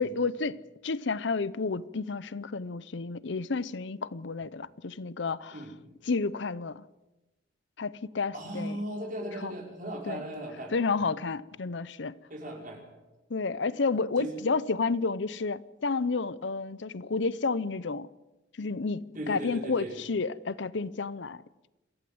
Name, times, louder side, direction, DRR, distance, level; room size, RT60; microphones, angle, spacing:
voice 1, 0.0-5.6 6.1-6.8 7.8-8.8 9.4-9.5 10.1-10.2 10.7-12.1 13.3-18.1 18.6-21.4, left 4 dB, 70° left, 0.7 m, -31 dB
voice 2, 8.3-10.7 12.3-12.8 14.2-14.4 19.1-20.0, right 1 dB, 45° right, 5.6 m, -37 dB
27.0 x 15.0 x 7.9 m
head